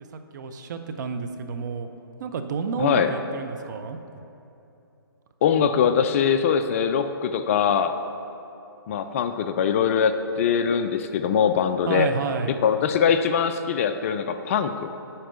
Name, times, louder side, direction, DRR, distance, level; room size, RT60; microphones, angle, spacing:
voice 1, 0.1-1.9 2.2-4.0 11.9-12.5, right 5 dB, 45° right, 7 dB, 0.7 m, -30 dB
voice 2, 2.8-3.1 5.4-7.9 8.9-12.1 12.6-14.9, left 7 dB, 35° left, 9 dB, 0.4 m, -22 dB
10.0 x 4.3 x 6.6 m, 2.8 s
hypercardioid pair, 140°, 13 cm